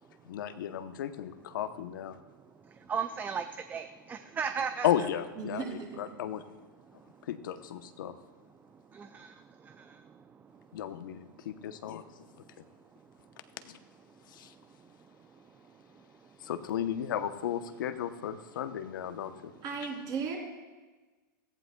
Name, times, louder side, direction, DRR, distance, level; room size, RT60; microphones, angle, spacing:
voice 1, 0.3-2.2 4.8-5.6 6.0-6.4 7.3-8.2 10.7-12.0 13.7-13.8 14.4-14.5 16.4-19.5, left 10 dB, 70° left, 10 dB, 0.8 m, -34 dB
voice 2, 2.9-3.4 3.7-5.1 9.0-9.3, right 6 dB, 15° right, 9 dB, 0.4 m, -34 dB
voice 3, 5.4-6.0 19.6-20.4, right 6 dB, 35° right, -1 dB, 3.3 m, -36 dB
17.0 x 14.5 x 2.3 m, 1.3 s
hypercardioid pair, 125°, 11 cm